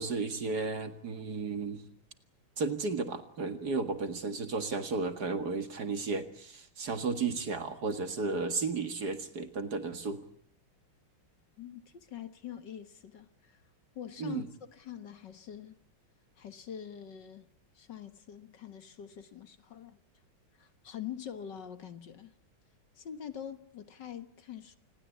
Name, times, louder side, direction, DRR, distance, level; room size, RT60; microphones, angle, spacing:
voice 1, 0.0-1.8 2.6-10.2 14.2-14.5, right 4 dB, 50° right, 2.3 m, -33 dB
voice 2, 11.6-13.6 14.0-15.8 16.4-17.5 17.8-20.0 20.6-22.4 23.0-24.8, left 9 dB, 60° left, 1.9 m, -44 dB
27.0 x 20.5 x 8.3 m
omnidirectional pair, 2.3 m